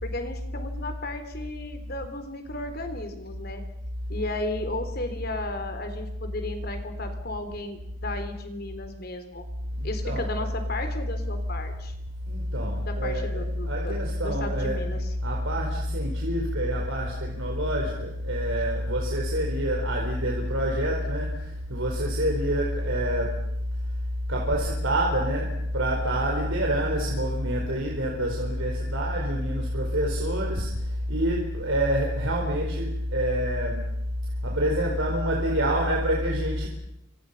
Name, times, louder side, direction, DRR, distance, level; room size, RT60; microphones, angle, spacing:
voice 1, 0.0-3.6 4.1-9.5 9.8-11.9 12.8-14.0 14.2-15.1, left 2 dB, 50° left, 7 dB, 3.9 m, -34 dB
voice 2, 9.7-10.5 12.3-14.8 15.2-23.4 24.3-33.9 34.4-36.7, equal, 75° right, -1 dB, 4.6 m, -27 dB
30.0 x 26.0 x 5.8 m, 0.76 s
head